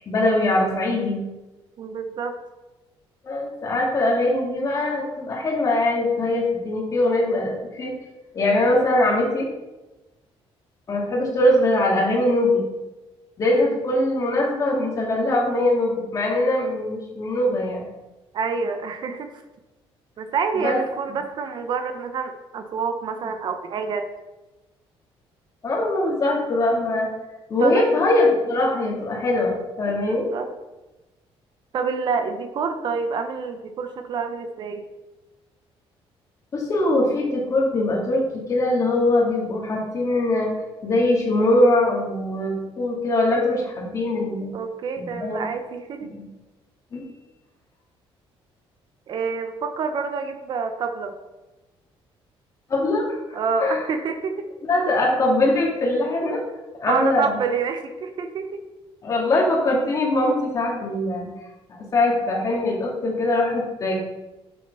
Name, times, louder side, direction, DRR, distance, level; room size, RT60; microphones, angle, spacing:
voice 1, 0.1-1.2 3.2-7.9 8.3-9.5 10.9-12.6 13.4-17.9 20.6-20.8 25.6-27.1 27.5-30.3 36.5-40.5 40.8-44.5 45.0-45.5 46.1-46.2 46.9-47.0 52.7-53.2 53.6-53.9 54.7-56.4 56.8-57.4 59.0-61.3 61.7-63.9, left 1 dB, 35° left, -2 dB, 2.5 m, -22 dB
voice 2, 1.8-2.3 13.6-13.7 18.3-19.3 20.2-24.1 27.6-28.0 29.9-30.5 31.7-34.9 44.5-46.1 49.1-51.1 53.3-54.5 56.9-58.6, right 5 dB, 50° right, 7 dB, 0.8 m, -27 dB
7.8 x 6.4 x 5.5 m, 1.1 s
cardioid pair, 160°, 10 cm